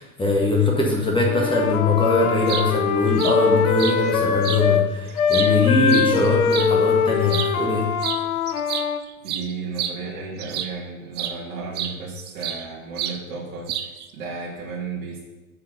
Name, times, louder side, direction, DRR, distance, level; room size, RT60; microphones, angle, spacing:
voice 1, 0.0-7.9, left 2 dB, 10° left, -2 dB, 1.6 m, -21 dB
Wind instrument woodwind instrument, 1.2-4.9 5.1-9.0, left 7 dB, 70° left, 0.9 m, -22 dB
sound 1, 2.3-2.7 3.2-3.4 3.8-4.0 4.4-4.6 5.1-6.7 7.2-7.5 8.0-8.2 8.5-10.8 11.2-11.4 11.8-12.7 13.0-13.2 13.7-14.1, right 10 dB, 25° right, 0.5 m, -29 dB
voice 2, 9.2-15.3, right 4 dB, 65° right, -6 dB, 2.9 m, -34 dB
7.1 x 4.7 x 7.0 m, 1.1 s
hypercardioid pair, 95°, 44 cm